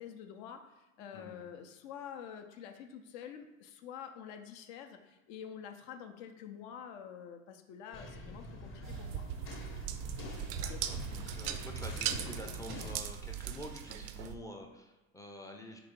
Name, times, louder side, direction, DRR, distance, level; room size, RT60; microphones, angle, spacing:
voice 1, 0.0-9.2 10.7-10.8, left 8 dB, 60° left, 5 dB, 0.7 m, -47 dB
voice 2, 1.1-1.5 10.5-15.8, left 1 dB, 10° left, 1 dB, 0.4 m, -48 dB
sound 1, 7.9-13.0, left 2 dB, 30° left, 0.9 m, -46 dB
sound 2, 8.8-14.4, right 9 dB, 45° right, 0.4 m, -39 dB
4.0 x 2.9 x 3.6 m, 1.1 s
hypercardioid pair, 70°, 42 cm